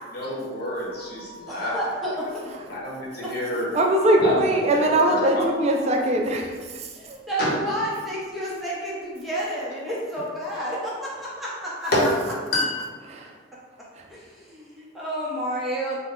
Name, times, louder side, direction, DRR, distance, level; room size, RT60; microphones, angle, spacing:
voice 1, 0.1-1.8 2.1-2.2 2.6-3.7 4.2-5.2 7.4-7.6 11.9-12.0 12.5-12.9, left 1 dB, 50° left, -5 dB, 1.0 m, -27 dB
sound 1, 0.8-2.4 2.7-2.8 3.3-7.7 8.2-8.3 9.1-9.2 9.4-9.5, left 2 dB, 75° left, 0.3 m, -46 dB
voice 2, 1.5-2.4 3.2-3.3 6.9-11.9 14.1-16.0, right 1 dB, ahead, -7 dB, 0.7 m, -30 dB
voice 3, 3.7-7.2 13.1-13.4 13.9-14.1, right 1 dB, 35° right, 2 dB, 0.3 m, -22 dB
3.4 x 2.1 x 3.6 m, 1.6 s
head